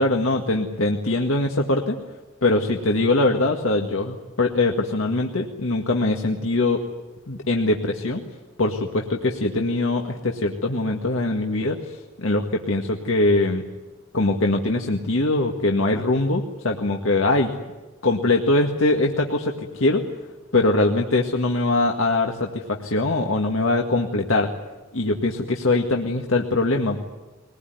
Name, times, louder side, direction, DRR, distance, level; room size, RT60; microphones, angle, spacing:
voice 1, 0.0-2.0 2.4-6.9 7.3-8.2 8.6-13.6 14.1-17.5 18.0-20.0 20.5-24.5 24.9-27.0, left 2 dB, 90° left, 1 dB, 1.8 m, -22 dB
22.5 x 20.0 x 9.3 m, 1.2 s
head